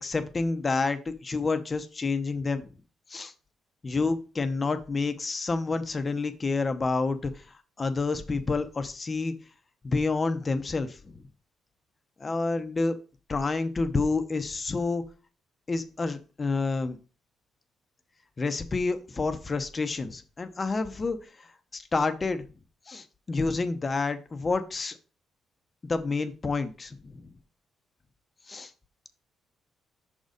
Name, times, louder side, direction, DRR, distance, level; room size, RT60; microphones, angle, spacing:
voice 1, 0.0-2.7 3.1-3.3 3.8-7.5 7.8-9.3 9.8-11.1 12.2-12.9 13.3-15.0 15.7-17.0 18.4-21.2 21.7-22.5 22.9-24.9 25.9-27.2 28.5-28.7, left 3 dB, 30° left, 9 dB, 0.8 m, -29 dB
6.1 x 4.0 x 5.1 m, 0.34 s
cardioid pair, 90°, 0 cm